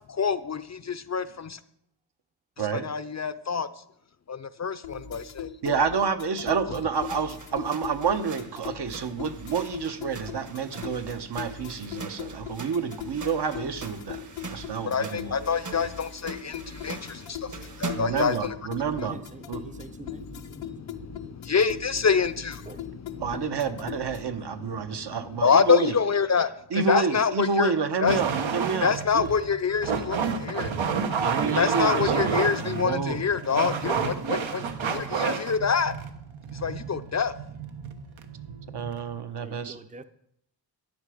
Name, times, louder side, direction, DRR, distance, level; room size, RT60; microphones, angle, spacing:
voice 1, 0.1-1.6 2.7-3.7 4.3-5.5 14.9-18.4 19.6-23.2 25.0-25.1 25.4-27.7 28.0-28.2 28.8-30.2 30.5-30.7 31.6-35.9 36.6-37.3, left 6 dB, 35° left, 0.5 m, -26 dB
sound 1, 4.8-24.4, left 8 dB, 80° left, 0.9 m, -40 dB
voice 2, 5.6-15.4 17.9-19.2 19.5-19.6 23.2-25.9 26.7-29.3 31.2-32.3 32.6-33.2 38.7-39.8, right 5 dB, 60° right, 1.1 m, -29 dB
sound 2, 6.9-18.3, right 4 dB, 40° right, 1.3 m, -42 dB
voice 3, 18.9-20.7 22.7-22.8 39.4-40.0, right 4 dB, 15° right, 0.6 m, -45 dB
sound 3, 28.1-39.1, right 5 dB, 80° right, 1.3 m, -30 dB
14.0 x 9.5 x 5.0 m
wide cardioid pair, 100°, 46 cm